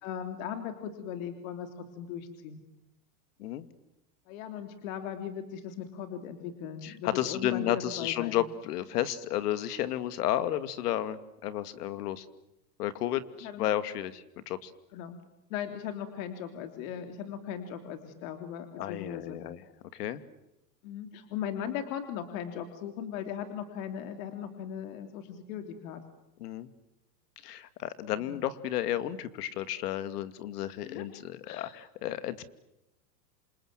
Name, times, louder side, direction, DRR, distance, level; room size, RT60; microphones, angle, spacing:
voice 1, 0.0-2.6 4.3-8.4 13.4-13.7 14.9-15.2 15.5-19.4 20.8-26.0 28.1-28.4 30.8-31.1 31.4-31.8, left 9 dB, 55° left, 7 dB, 3.4 m, -38 dB
voice 2, 6.8-12.3 12.8-14.7 18.8-19.6 19.9-20.2 26.4-26.7 27.4-32.5, left 12 dB, 70° left, 13 dB, 2.6 m, -32 dB
28.0 x 27.5 x 7.7 m, 0.87 s
supercardioid pair, 150°, 48 cm